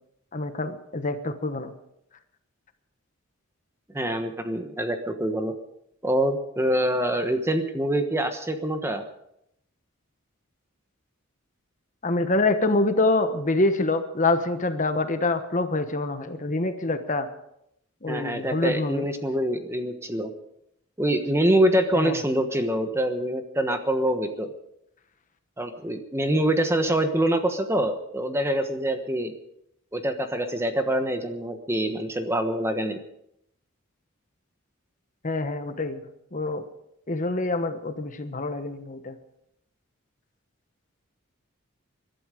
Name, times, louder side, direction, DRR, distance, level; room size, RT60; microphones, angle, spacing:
voice 1, 0.3-1.7 12.0-17.3 18.0-19.0 21.9-22.1 35.2-36.0 36.3-36.6 37.1-39.1, left 2 dB, 35° left, 8 dB, 1.2 m, -26 dB
voice 2, 3.9-5.5 6.0-9.0 18.1-20.3 21.0-24.5 25.6-29.3 29.9-33.0, right 1 dB, 10° right, 7 dB, 1.2 m, -25 dB
22.5 x 12.0 x 5.1 m, 0.78 s
head